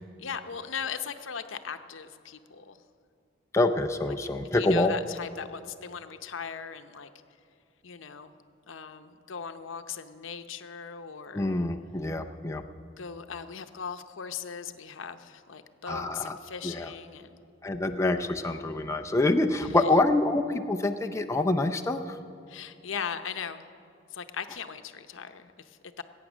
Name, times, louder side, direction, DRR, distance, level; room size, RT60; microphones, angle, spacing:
voice 1, 0.2-2.8 4.2-7.1 7.8-8.4 8.7-11.5 13.0-17.4 19.6-19.9 22.5-23.6 24.1-26.0, left 7 dB, 80° left, 9 dB, 0.7 m, -39 dB
voice 2, 3.5-4.9 11.3-12.6 15.9-16.4 16.6-16.9 17.6-22.2, left 2 dB, 15° left, 4 dB, 0.5 m, -26 dB
21.0 x 8.9 x 6.2 m, 2.7 s
head